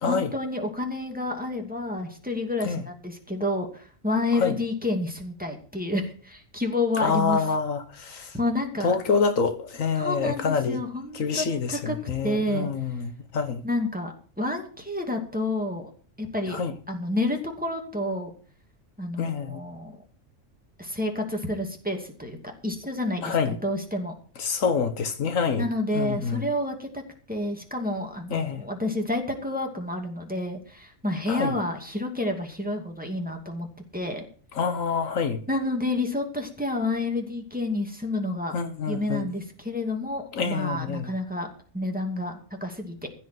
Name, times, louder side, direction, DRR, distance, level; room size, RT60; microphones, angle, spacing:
voice 1, 0.1-7.4 8.2-9.0 10.0-12.7 13.6-15.9 16.2-16.6 16.9-18.3 19.0-20.0 20.8-24.1 25.6-27.0 27.3-33.7 33.9-34.3 35.5-38.6 38.9-43.1, left 2 dB, 5° right, 2.4 m, -29 dB
voice 2, 7.0-8.4 8.8-10.8 11.1-13.6 16.5-16.7 19.2-19.6 23.2-23.6 24.4-25.7 25.9-26.5 28.3-28.6 31.3-31.5 34.5-35.4 38.5-39.3 40.3-41.1, left 5 dB, 80° left, 1.6 m, -26 dB
15.5 x 5.2 x 9.3 m
omnidirectional pair, 1.4 m